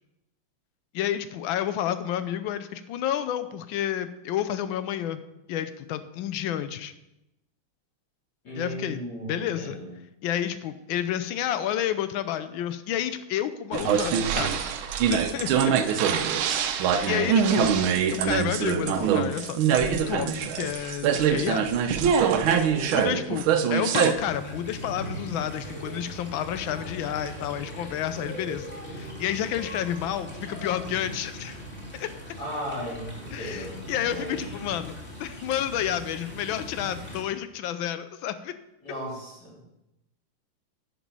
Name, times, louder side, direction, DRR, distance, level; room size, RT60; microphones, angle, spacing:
voice 1, 0.9-5.2 5.5-6.9 8.5-9.0 9.3-9.8 10.2-14.6 15.1-16.1 17.1-17.7 18.1-21.7 22.9-31.6 32.0-32.1 33.3-38.5, left 10 dB, 75° left, 12 dB, 1.3 m, -30 dB
voice 2, 8.4-9.9 13.7-13.8 14.1-14.2 16.1-16.3 17.1-17.5 22.4-23.0 32.4-33.7 34.0-34.6 38.8-39.6, equal, 50° left, -6 dB, 4.0 m, -36 dB
sound 1, 13.7-24.1, right 7 dB, 75° right, 1.5 m, -24 dB
sound 2, 24.1-37.2, equal, 5° left, 2.1 m, -40 dB
9.7 x 6.1 x 5.5 m, 0.91 s
omnidirectional pair, 2.4 m